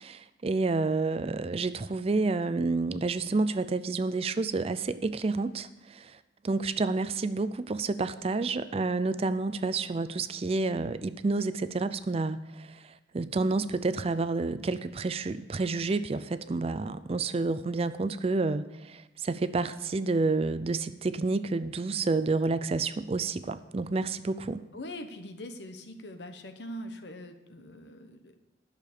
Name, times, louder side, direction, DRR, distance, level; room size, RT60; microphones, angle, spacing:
voice 1, 0.0-6.2 6.4-24.6, right 3 dB, 35° right, 0.4 m, -29 dB
voice 2, 24.7-28.4, left 1 dB, 70° left, 1.1 m, -42 dB
11.5 x 6.7 x 6.7 m
head